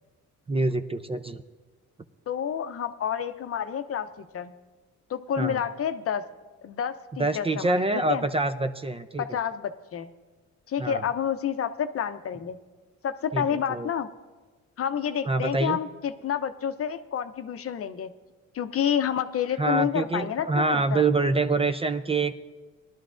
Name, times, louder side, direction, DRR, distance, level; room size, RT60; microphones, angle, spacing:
voice 1, 0.5-1.4 5.4-5.6 7.2-9.4 10.8-11.0 13.3-13.9 15.2-15.8 19.6-22.3, right 3 dB, 20° right, 10 dB, 0.5 m, -26 dB
voice 2, 2.3-4.5 5.1-6.2 6.6-8.3 9.2-10.1 10.7-12.6 13.0-14.1 14.8-18.1 18.5-21.0, left 8 dB, 50° left, 9 dB, 0.7 m, -29 dB
19.5 x 11.5 x 2.5 m, 1.3 s
cardioid pair, 90°, 30 cm